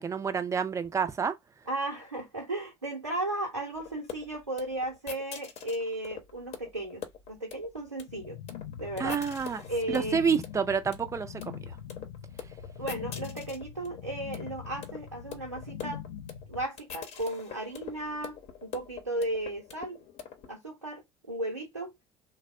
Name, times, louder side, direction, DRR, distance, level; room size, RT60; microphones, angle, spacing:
voice 1, 0.0-1.4 9.0-9.6 9.9-11.6, right 6 dB, 20° right, 0.4 m, -28 dB
voice 2, 1.7-8.4 8.8-9.2 9.7-10.2 12.8-16.0 16.5-18.4 18.6-20.0 20.5-21.9, right 1 dB, 85° right, 0.6 m, -35 dB
sound 1, 3.7-20.6, left 8 dB, 45° left, 0.8 m, -43 dB
sound 2, 8.1-16.6, left 9 dB, 70° left, 0.4 m, -43 dB
3.2 x 2.0 x 2.4 m
figure-of-eight pair, 60°, 15 cm